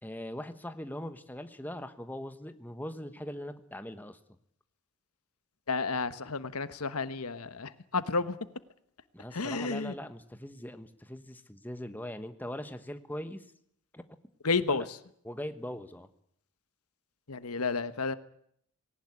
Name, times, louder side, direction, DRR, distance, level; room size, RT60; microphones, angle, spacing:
voice 1, 0.0-4.2 9.1-13.4 13.9-14.0 14.7-14.9 15.2-16.1, left 1 dB, 10° left, 9 dB, 1.2 m, -41 dB
voice 2, 5.7-8.4 9.3-9.9 14.4-14.8 17.3-18.2, left 4 dB, 85° left, 13 dB, 1.3 m, -31 dB
19.5 x 18.5 x 9.7 m, 0.69 s
head